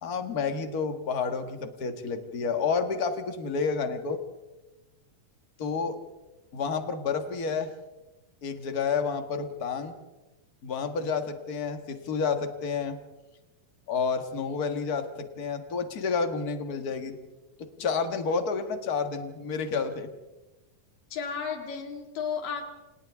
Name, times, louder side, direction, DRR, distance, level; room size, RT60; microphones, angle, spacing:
voice 1, 0.0-4.2 5.6-6.0 6.5-7.7 8.4-9.9 10.6-13.0 13.9-17.2 17.6-20.1, left 5 dB, 40° left, 6 dB, 1.6 m, -30 dB
voice 2, 21.1-22.6, left 6 dB, 85° left, 4 dB, 4.0 m, -33 dB
29.5 x 27.5 x 3.6 m, 1.1 s
omnidirectional pair, 3.8 m